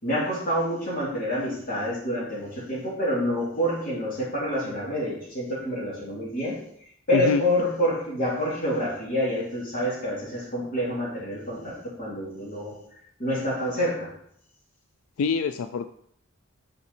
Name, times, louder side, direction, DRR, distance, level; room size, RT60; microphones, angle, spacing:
voice 1, 0.0-6.6 7.1-12.8 13.2-14.1, equal, 40° left, -6 dB, 3.1 m, -27 dB
voice 2, 15.2-15.9, left 4 dB, 85° left, 10 dB, 0.4 m, -25 dB
7.0 x 5.3 x 4.3 m, 0.68 s
head